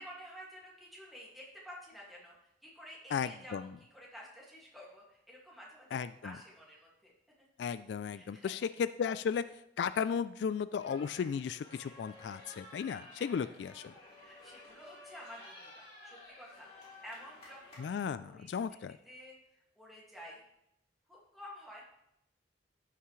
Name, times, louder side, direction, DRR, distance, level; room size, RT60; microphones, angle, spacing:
voice 1, 0.0-2.3 2.6-7.1 8.1-8.5 14.2-18.5 19.0-20.4 21.1-22.0, equal, ahead, -4 dB, 2.1 m, -51 dB
voice 2, 3.1-3.7 5.9-6.3 7.6-9.4 9.8-13.9 17.8-19.0, left 6 dB, 75° left, 14 dB, 0.3 m, -35 dB
sound 1, 10.8-18.1, left 2 dB, 35° left, 3.2 m, -53 dB
13.0 x 5.8 x 3.2 m, 0.81 s
head